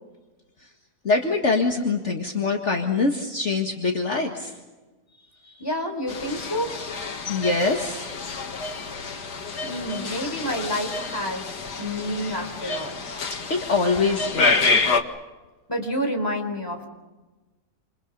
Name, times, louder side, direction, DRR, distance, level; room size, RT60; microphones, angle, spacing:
voice 1, 1.0-4.5 5.4-5.5 7.3-8.1 13.2-14.5, left 3 dB, 45° left, 1 dB, 2.1 m, -24 dB
voice 2, 5.6-6.7 9.6-11.5 11.8-12.9 15.7-16.9, equal, 15° left, 3 dB, 4.4 m, -29 dB
sound 1, 6.1-15.0, left 4 dB, 85° left, 2.3 m, -28 dB
28.5 x 28.5 x 5.5 m, 1.2 s
omnidirectional pair, 1.7 m